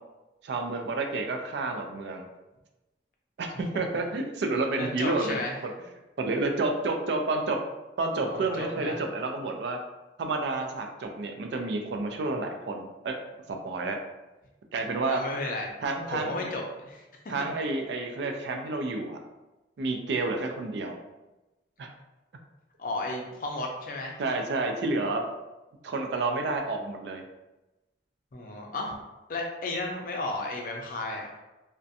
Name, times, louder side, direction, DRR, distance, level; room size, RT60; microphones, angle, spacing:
voice 1, 0.4-2.3 3.4-5.7 6.2-7.6 8.0-9.8 10.2-13.2 13.5-14.0 14.7-15.2 15.8-16.5 17.3-19.2 19.8-21.0 21.8-21.9 24.2-25.3 25.8-27.2, right 3 dB, 75° right, 4 dB, 0.4 m, -30 dB
voice 2, 4.8-5.6 8.2-9.0 15.1-15.7 16.1-17.0 17.4-17.5 22.8-24.2 28.3-28.9 29.3-31.3, left 2 dB, 50° left, 0 dB, 0.4 m, -33 dB
2.4 x 2.1 x 2.6 m, 1.0 s
head